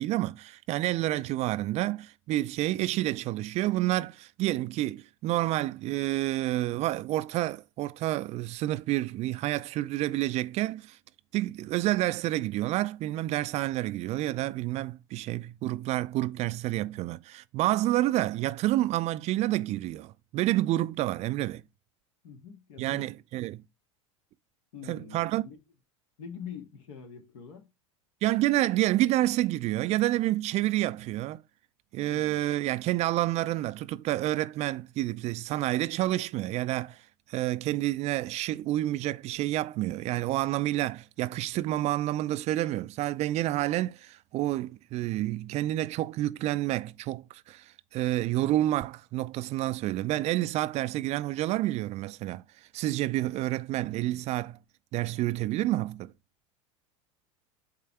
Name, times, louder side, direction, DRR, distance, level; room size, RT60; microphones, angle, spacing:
voice 1, 0.0-11.0 11.3-21.6 22.8-23.6 24.9-25.4 28.2-31.4 31.9-37.0 37.3-52.4 52.7-54.6 54.9-56.1, right 15 dB, 40° right, 0.4 m, -29 dB
voice 2, 22.2-23.1 24.7-25.6 26.2-27.7 32.1-32.4, left 7 dB, 65° left, 1.8 m, -44 dB
8.6 x 3.4 x 3.4 m
hypercardioid pair, 85°, 16 cm